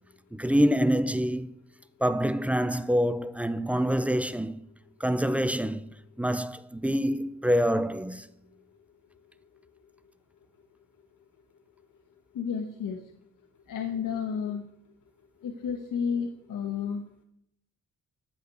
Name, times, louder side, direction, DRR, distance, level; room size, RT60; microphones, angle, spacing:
voice 1, 0.3-1.5 2.0-4.6 5.0-5.8 6.2-8.3, equal, 5° right, 0.4 m, -26 dB
voice 2, 12.3-13.0 13.7-14.6 15.4-17.0, left 6 dB, 85° left, 1.2 m, -31 dB
13.0 x 5.1 x 8.0 m
wide cardioid pair, 165°, 31 cm